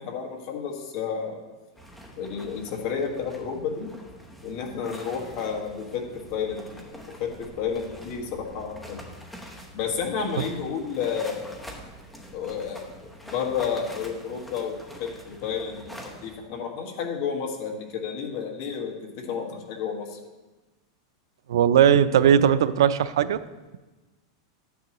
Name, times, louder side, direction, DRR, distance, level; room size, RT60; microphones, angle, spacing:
voice 1, 0.0-1.4 2.2-3.9 4.4-6.8 7.2-9.1 9.7-11.6 12.3-12.9 13.2-20.2, left 6 dB, 40° left, 1 dB, 1.6 m, -31 dB
sound 1, 1.8-16.4, equal, 5° left, 0.9 m, -45 dB
voice 2, 21.5-23.4, right 9 dB, 90° right, 14 dB, 0.5 m, -18 dB
11.5 x 9.3 x 3.0 m, 1.2 s
supercardioid pair, 175°, 2 cm